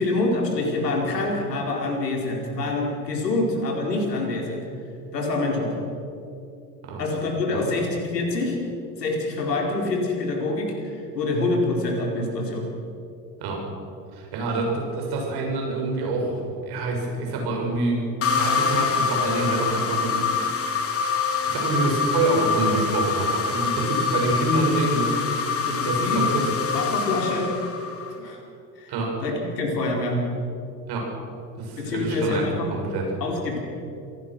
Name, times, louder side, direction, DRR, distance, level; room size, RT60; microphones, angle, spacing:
voice 1, 0.0-4.6 5.1-5.8 7.0-8.6 9.0-12.7 25.6-26.2 26.7-27.5 28.2-28.4 28.8-28.9 29.2-30.2 31.8-32.7 33.2-33.6, left 2 dB, 80° left, 0 dB, 4.7 m, -26 dB
voice 2, 14.1-20.4 21.1-26.5 28.9-29.1 30.9-31.1 31.6-33.1, right 2 dB, 50° right, 1 dB, 7.2 m, -26 dB
sound 1, 18.2-28.2, left 5 dB, 30° left, 2.9 m, -25 dB
27.5 x 18.0 x 6.3 m, 2.6 s
figure-of-eight pair, 75°, 48 cm